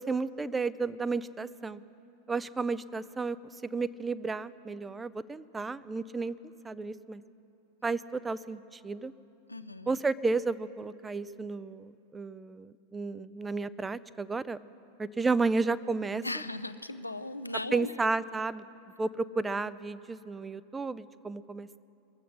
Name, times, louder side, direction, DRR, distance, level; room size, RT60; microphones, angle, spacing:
voice 1, 0.0-1.8 2.3-6.3 6.6-7.2 7.8-9.1 9.9-14.6 15.0-16.2 17.7-18.6 19.0-21.8, right 4 dB, 10° right, 16 dB, 0.3 m, -32 dB
voice 2, 9.5-10.0 16.2-17.9, left 2 dB, 85° left, 11 dB, 0.5 m, -37 dB
22.5 x 7.6 x 6.4 m, 2.9 s
figure-of-eight pair, 90°, 0 cm